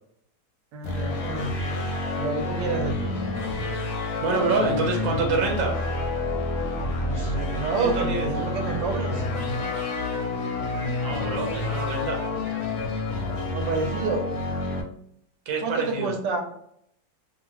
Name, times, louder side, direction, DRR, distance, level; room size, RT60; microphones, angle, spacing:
voice 1, 0.7-1.5 2.2-3.1 4.6-4.7 5.1-5.3 7.0-9.2 13.5-14.2 15.6-16.4, right 3 dB, 80° right, 2 dB, 1.3 m, -29 dB
sound 1, 0.8-14.8, left 2 dB, 70° left, 0.9 m, -29 dB
voice 2, 4.2-5.8 7.8-8.3 10.6-12.2 15.5-16.1, right 3 dB, 60° right, 2 dB, 0.9 m, -27 dB
2.7 x 2.6 x 2.9 m, 0.70 s
omnidirectional pair, 1.9 m